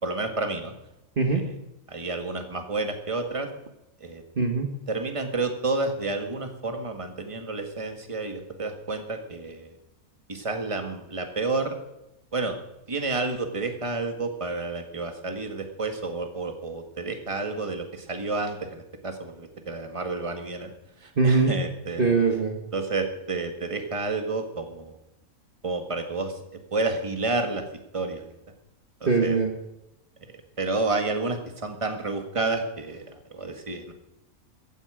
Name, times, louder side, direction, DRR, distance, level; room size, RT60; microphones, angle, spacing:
voice 1, 0.0-0.7 1.2-1.6 1.9-3.5 4.0-4.2 4.9-9.8 10.3-11.8 12.3-12.6 12.9-20.7 21.0-22.2 22.7-25.0 25.6-26.4 26.7-27.6 27.9-28.2 29.0-29.4 30.2-33.9, right 3 dB, 20° right, 5 dB, 1.8 m, -30 dB
voice 2, 4.4-4.7 21.2-21.5 22.0-22.6 29.0-29.5, right 4 dB, 40° right, 2 dB, 1.6 m, -22 dB
16.0 x 15.0 x 5.0 m, 0.88 s
omnidirectional pair, 1.5 m